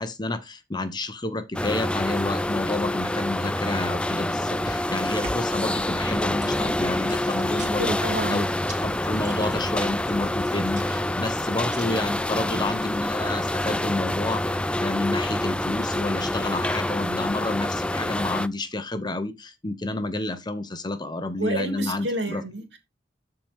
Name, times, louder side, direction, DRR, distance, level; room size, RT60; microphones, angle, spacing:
voice 1, 0.0-8.4 8.8-22.4, left 2 dB, 25° left, 0.9 m, -30 dB
sound 1, 1.5-18.5, left 1 dB, 5° left, 0.4 m, -27 dB
sound 2, 6.8-11.9, right 2 dB, 45° right, 2.9 m, -44 dB
voice 2, 7.8-8.4 21.4-22.8, right 1 dB, 70° right, 2.9 m, -29 dB
13.0 x 4.5 x 3.6 m
head